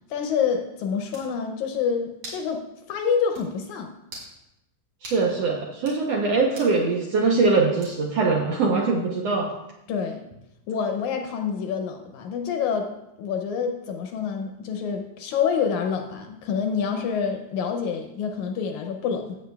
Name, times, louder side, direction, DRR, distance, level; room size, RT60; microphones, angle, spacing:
voice 1, 0.1-4.0 9.9-10.3 10.7-12.9 13.2-19.4, left 6 dB, 75° left, 5 dB, 1.9 m, -27 dB
sound 1, 0.7-0.8 1.1-1.3 2.2-2.5 2.9-3.0 3.3-3.5 4.0-4.3 5.0-5.2 5.7-6.0 6.6-6.8 7.8-8.2, right 1 dB, 55° right, 3.9 m, -41 dB
voice 2, 5.0-9.5, right 4 dB, 70° right, -1 dB, 1.6 m, -22 dB
15.5 x 7.8 x 2.3 m, 0.88 s
omnidirectional pair, 3.8 m